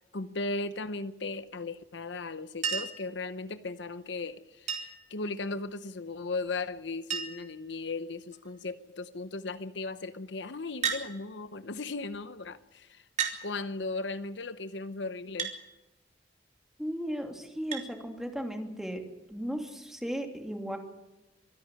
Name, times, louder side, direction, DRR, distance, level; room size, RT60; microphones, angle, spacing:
voice 1, 0.1-13.0 13.4-15.5, left 3 dB, 70° left, 12 dB, 0.9 m, -37 dB
Chink clink, 2.6-3.1 4.7-5.1 6.5-6.6 6.8-6.9 7.1-7.6 8.3-8.7 10.8-11.1 12.1-12.2 13.2-13.4 15.4-15.6 17.7-17.9 19.3-19.4, right 7 dB, 40° right, 3.5 m, -33 dB
voice 2, 16.8-19.0 19.3-20.8, equal, ahead, 4 dB, 2.8 m, -35 dB
25.5 x 11.0 x 9.9 m, 1.0 s
head